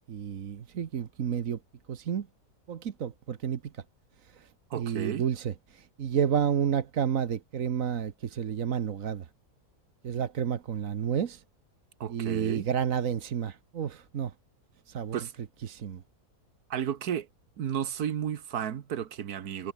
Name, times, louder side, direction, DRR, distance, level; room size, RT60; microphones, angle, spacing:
voice 1, 0.1-1.6 1.9-2.3 2.7-3.6 4.7-9.2 10.0-11.4 12.1-14.3 14.9-15.2 15.6-16.0, right 8 dB, 60° right, 1.5 m, -30 dB
voice 2, 4.7-5.2 12.0-12.7 15.1-15.3 16.7-17.3 17.6-19.7, right 9 dB, 75° right, 1.6 m, -33 dB
omnidirectional pair, 1.6 m